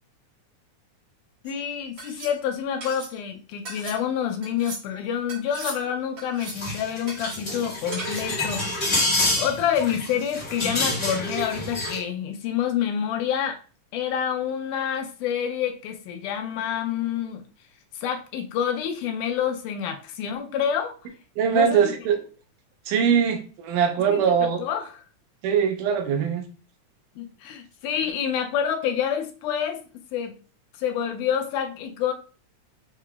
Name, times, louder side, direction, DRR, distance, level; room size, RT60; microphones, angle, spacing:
voice 1, 1.4-8.6 9.4-13.6 13.9-17.4 18.0-21.0 21.5-21.9 24.1-25.0 27.2-29.8 30.1-30.4 30.8-32.1, left 8 dB, 80° left, 5 dB, 2.1 m, -27 dB
sound 1, 1.5-1.6 2.0-2.3 2.8-3.1 3.7-4.0 4.4-4.8 5.3-5.8 6.2-6.7 7.1-7.4 7.9-8.3, right 3 dB, 55° right, 2.8 m, -38 dB
sound 2, 6.5-12.0, left 2 dB, 30° left, 1.7 m, -27 dB
voice 2, 21.4-22.2 22.9-24.6 25.4-26.4, right 7 dB, 85° right, 5 dB, 2.3 m, -22 dB
6.5 x 2.8 x 2.3 m, 0.36 s
omnidirectional pair, 3.6 m